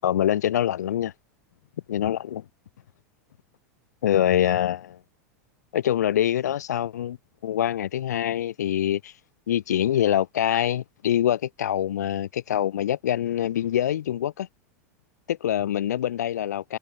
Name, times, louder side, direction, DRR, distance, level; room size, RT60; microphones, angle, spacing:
voice 1, 0.0-1.1 1.9-2.4 4.0-5.0 5.7-7.2 7.4-9.1 9.5-14.5 15.3-16.8, left 11 dB, 85° left, 7.9 m, -24 dB
hypercardioid pair, 115°, 9 cm